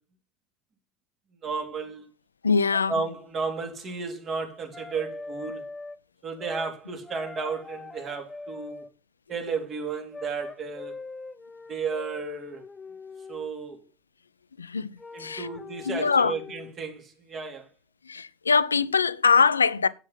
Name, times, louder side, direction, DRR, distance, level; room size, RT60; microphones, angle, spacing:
voice 1, 1.4-2.0 2.9-5.7 6.2-8.8 9.3-11.0 11.7-12.6 13.3-13.8 15.1-17.7, right 5 dB, 35° right, 3.0 m, -33 dB
voice 2, 2.4-2.9 14.6-15.5 15.9-16.3 18.1-19.9, left 5 dB, 90° left, 0.5 m, -23 dB
sound 1, 4.7-6.0 6.4-6.7 7.0-8.9 10.1-13.5 15.0-16.7, left 3 dB, 15° left, 0.8 m, -42 dB
8.0 x 7.6 x 5.7 m
figure-of-eight pair, 75°, 0 cm